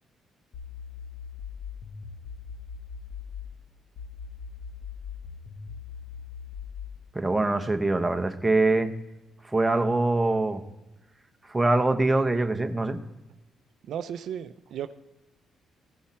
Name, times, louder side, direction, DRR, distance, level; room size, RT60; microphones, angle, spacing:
sound 1, 0.5-3.5 4.0-7.0, left 6 dB, 65° left, 1.1 m, -40 dB
voice 1, 7.1-8.9 9.4-10.6 11.5-13.0, right 2 dB, 15° right, 6 dB, 1.0 m, -24 dB
voice 2, 13.9-14.9, right 9 dB, 70° right, 11 dB, 0.5 m, -34 dB
15.5 x 5.6 x 4.3 m, 1.1 s
cardioid pair, 90°, 0 cm